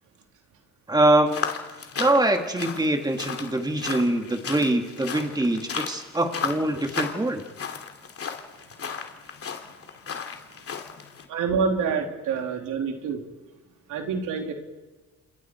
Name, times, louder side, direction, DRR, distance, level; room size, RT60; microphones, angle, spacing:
voice 1, 0.9-1.4 2.0-7.4, right 1 dB, 15° right, 4 dB, 2.4 m, -23 dB
sound 1, 1.3-11.2, left 6 dB, 50° left, 2.7 m, -35 dB
voice 2, 11.3-13.2 13.9-14.5, right 5 dB, 85° right, 2 dB, 3.2 m, -27 dB
28.5 x 27.5 x 4.6 m, 1.3 s
cardioid pair, 90°, 30 cm